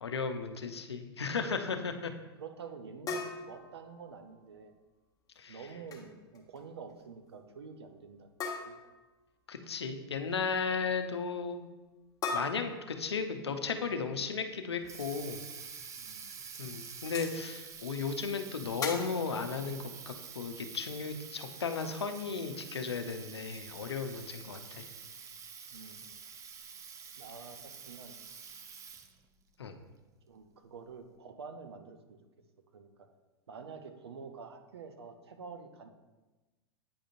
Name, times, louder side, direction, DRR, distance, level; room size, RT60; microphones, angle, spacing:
voice 1, 0.0-2.1 5.4-5.6 9.5-11.7 12.3-15.4 16.6-24.9 29.6-29.7, left 5 dB, 85° left, 7 dB, 0.6 m, -35 dB
voice 2, 2.4-4.7 5.5-8.3 8.6-8.7 16.0-16.3 25.7-26.0 27.2-28.2 30.2-32.2 32.7-32.9 33.5-35.9, right 5 dB, 80° right, 7 dB, 0.7 m, -48 dB
sound 1, 3.1-4.4 5.7-6.1 6.3-6.6 6.9-7.0 8.4-9.1 12.2-13.4 15.4-15.5 16.1-16.2 17.1-17.4 18.8-19.3, left 4 dB, 25° left, 1.1 m, -39 dB
Water tap faucet, 14.5-29.2, right 6 dB, 25° right, 0.5 m, -48 dB
8.7 x 5.1 x 2.5 m, 1.1 s
hypercardioid pair, 100°, 13 cm